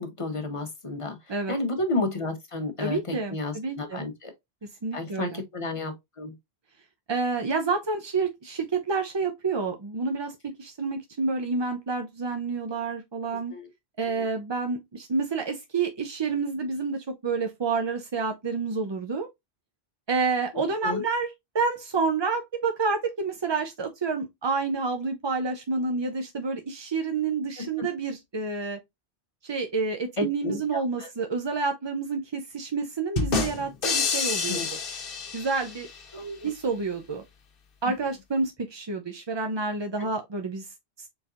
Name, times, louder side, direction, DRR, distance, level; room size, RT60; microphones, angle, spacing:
voice 1, 0.0-1.2 1.5-4.3 4.9-6.3 13.5-13.7 14.1-14.2 20.8-21.0 27.6-27.7 30.2-31.1 34.5-34.7 36.1-36.5, left 2 dB, 30° left, 1.0 m, -32 dB
voice 2, 2.8-4.0 4.8-5.4 7.1-13.5 14.0-19.3 20.1-28.8 29.4-34.6 35.3-35.9 36.4-37.2 37.8-40.7, right 4 dB, 40° right, 0.4 m, -29 dB
sound 1, 33.2-36.0, left 5 dB, 60° left, 1.0 m, -28 dB
4.3 x 3.9 x 2.4 m
omnidirectional pair, 1.1 m